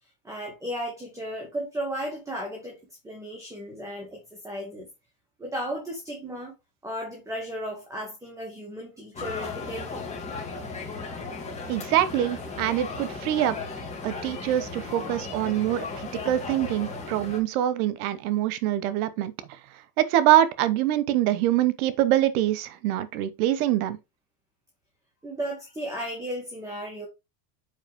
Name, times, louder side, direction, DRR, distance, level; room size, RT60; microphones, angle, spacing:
voice 1, 0.2-2.8 3.0-4.9 5.4-6.5 6.8-10.1 25.2-27.1, equal, 5° right, 2.2 m, -35 dB
sound 1, 9.1-17.4, left 4 dB, 15° left, 2.7 m, -36 dB
voice 2, 11.7-13.5 14.0-19.3 20.0-24.0, right 13 dB, 80° right, 1.1 m, -24 dB
8.1 x 5.0 x 3.6 m
cardioid pair, 145°, 43 cm